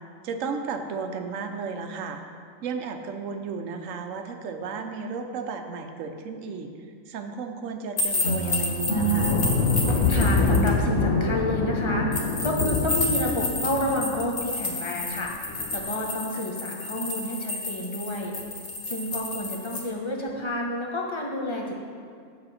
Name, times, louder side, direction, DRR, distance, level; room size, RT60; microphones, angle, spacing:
voice 1, 0.2-2.2 2.6-6.7 7.1-9.4, right 5 dB, 70° right, 6 dB, 1.0 m, -34 dB
sound 1, 8.0-10.7 12.1-19.8, left 2 dB, 45° left, 1.2 m, -31 dB
sound 2, 8.2-10.6 11.0-13.2, right 2 dB, 60° left, 1.5 m, -30 dB
sound 3, 8.8-14.3 15.5-15.8, left 4 dB, 85° left, 1.3 m, -25 dB
voice 2, 10.1-15.5 15.7-18.3 18.9-21.7, left 1 dB, 25° left, -1 dB, 0.9 m, -29 dB
7.7 x 7.1 x 4.2 m, 2.2 s
omnidirectional pair, 1.4 m